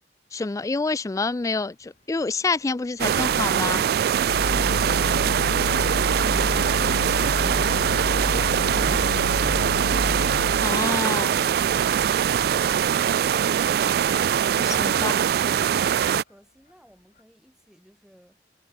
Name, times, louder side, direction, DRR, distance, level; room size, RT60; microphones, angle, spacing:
voice 1, 0.3-3.8 10.6-11.4 14.1-15.1, left 3 dB, 20° left, 0.3 m, -28 dB
sound 1, 0.9-17.2, left 2 dB, 45° left, 7.3 m, -60 dB
sound 2, 3.0-16.2, right 8 dB, 60° right, 0.3 m, -22 dB
sound 3, 4.2-10.8, left 4 dB, 85° left, 0.4 m, -30 dB
voice 2, 14.8-18.4, equal, 5° right, 4.7 m, -54 dB
head